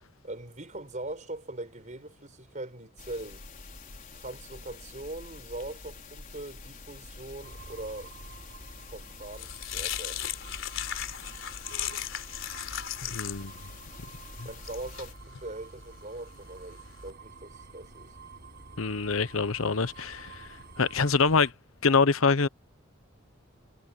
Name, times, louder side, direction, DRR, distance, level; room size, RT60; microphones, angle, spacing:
voice 1, 0.2-3.4 4.1-8.1 8.9-10.2 14.4-18.2, right 2 dB, 35° right, 5.1 m, -41 dB
sound 1, 3.0-15.1, left 3 dB, 40° left, 4.7 m, -47 dB
sound 2, 7.4-21.5, right 4 dB, 55° right, 6.5 m, -50 dB
sound 3, 8.8-17.1, left 10 dB, 65° left, 4.3 m, -38 dB
voice 2, 13.0-13.5 18.8-20.5 20.8-21.5 21.8-22.5, left 4 dB, 85° left, 1.0 m, -25 dB
head